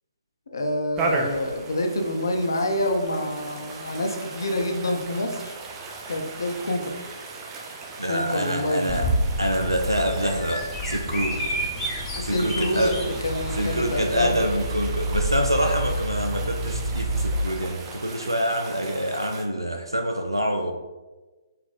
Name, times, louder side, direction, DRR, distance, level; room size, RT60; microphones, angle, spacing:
voice 1, 0.5-5.6 6.1-6.9 8.0-8.9 12.1-14.4, left 1 dB, 60° left, 3 dB, 0.5 m, -27 dB
sound 1, 1.0-19.4, right 3 dB, 15° right, 0.4 m, -37 dB
voice 2, 8.0-9.1 9.4-11.5 12.2-12.9 13.6-20.7, equal, 90° right, 3 dB, 0.3 m, -26 dB
Bird vocalization bird call bird song, 8.9-17.3, right 1 dB, 15° left, 0.8 m, -29 dB
4.0 x 2.1 x 3.9 m, 1.2 s
figure-of-eight pair, 135°, 2 cm